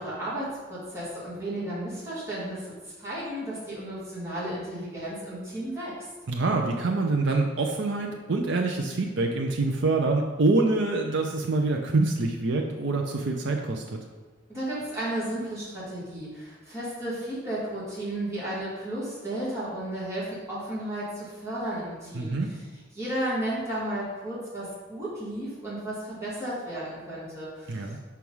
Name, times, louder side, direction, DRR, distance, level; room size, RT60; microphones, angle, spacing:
voice 1, 0.0-5.9 14.5-22.6 22.9-27.9, right 1 dB, 15° right, -9 dB, 2.2 m, -33 dB
voice 2, 6.3-14.0 22.1-22.5 27.7-28.0, right 3 dB, 65° right, 2 dB, 0.6 m, -25 dB
5.9 x 4.6 x 5.5 m, 1.3 s
head